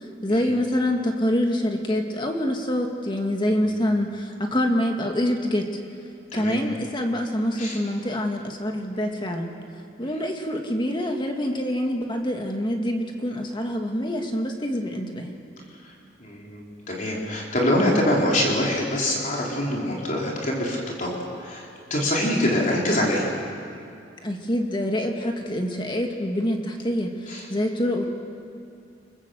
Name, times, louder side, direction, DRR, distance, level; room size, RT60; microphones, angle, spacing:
voice 1, 0.2-5.7 6.3-9.5 10.0-15.3 24.2-28.1, left 1 dB, 25° left, 3 dB, 1.9 m, -26 dB
voice 2, 16.2-21.7 21.9-23.3 27.3-27.5, left 1 dB, 45° left, -2 dB, 4.0 m, -24 dB
28.5 x 22.0 x 7.8 m, 2.5 s
head